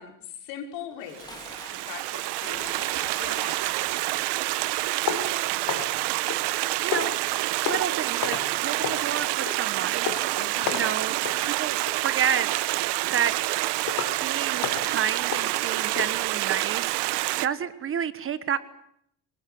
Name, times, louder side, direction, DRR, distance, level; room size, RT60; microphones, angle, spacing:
voice 1, 0.0-1.4 1.7-3.7 10.3-10.8, left 8 dB, 75° left, 4 dB, 5.5 m, -41 dB
Dishes pots and pans, 0.8-4.6, left 2 dB, 10° left, 2.3 m, -48 dB
Stream, 1.1-17.5, right 19 dB, 65° right, 1.0 m, -27 dB
sound 1, 5.1-6.5 6.9-7.3 7.6-7.9 8.2-8.5 8.8-9.1 9.4-9.6 10.0-10.3 10.6-11.0 11.2-11.4 11.9-12.1 12.6-12.7 13.2-13.3 13.9-14.2 14.6-16.1, left 9 dB, 50° left, 3.7 m, -33 dB
voice 2, 5.1-5.5 6.8-7.2 7.7-10.1 10.7-12.5 13.1-13.3 14.2-16.9 17.4-18.6, right 8 dB, 30° right, 14 dB, 1.2 m, -30 dB
25.0 x 20.0 x 9.4 m, 0.71 s
cardioid pair, 155°, 42 cm